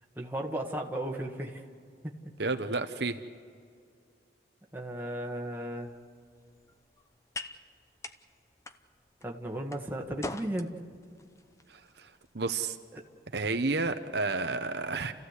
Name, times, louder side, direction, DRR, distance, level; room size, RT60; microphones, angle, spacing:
voice 1, 0.1-1.6 4.7-5.9 9.2-10.7 12.9-13.0, right 1 dB, 10° right, 0 dB, 1.7 m, -35 dB
voice 2, 2.4-3.2 11.7-12.8 13.3-15.1, right 3 dB, 65° right, 7 dB, 0.9 m, -31 dB
sound 1, 5.8-14.2, left 2 dB, 15° left, 0.7 m, -47 dB
29.5 x 15.0 x 8.2 m, 2.2 s
head